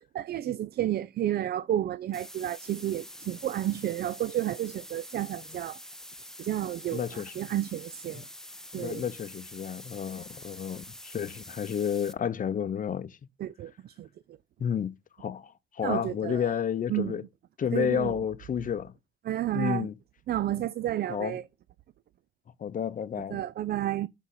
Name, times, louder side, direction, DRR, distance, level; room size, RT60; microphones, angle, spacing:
voice 1, 0.1-5.8 6.4-8.3 8.7-9.1 13.4-14.1 15.8-16.6 16.9-17.1 17.7-18.2 19.2-19.9 20.3-21.4 23.3-24.1, right 12 dB, 50° right, 0.4 m, -31 dB
sound 1, 2.1-12.1, left 1 dB, ahead, 0.6 m, -46 dB
voice 2, 6.9-7.3 8.1-8.2 8.7-13.1 14.6-17.2 17.6-18.9 19.5-19.9 21.1-21.4 22.6-23.4, left 8 dB, 40° left, 0.7 m, -31 dB
6.3 x 4.0 x 3.8 m
cardioid pair, 90°, 20 cm